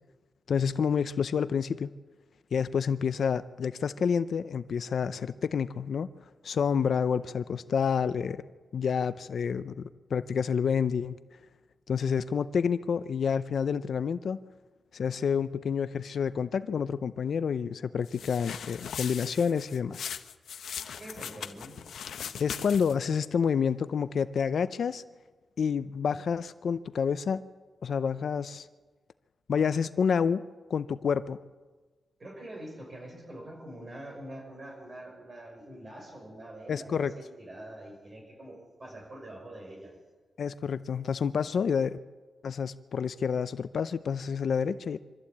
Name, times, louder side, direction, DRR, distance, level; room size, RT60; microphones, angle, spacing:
voice 1, 0.5-1.9 2.5-6.1 6.4-8.4 8.7-11.2 11.9-14.4 14.9-20.1 22.4-25.0 25.6-27.4 27.8-28.7 29.5-30.4 30.7-31.4 36.7-37.1 40.4-42.0 42.4-45.0, left 6 dB, 55° left, 13 dB, 0.6 m, -28 dB
sound 1, 18.1-23.1, left 8 dB, 90° left, 0.9 m, -40 dB
voice 2, 21.0-21.8 32.2-40.0, right 1 dB, 30° right, 1 dB, 6.3 m, -45 dB
24.5 x 13.5 x 8.6 m, 1.3 s
wide cardioid pair, 160°, 0 cm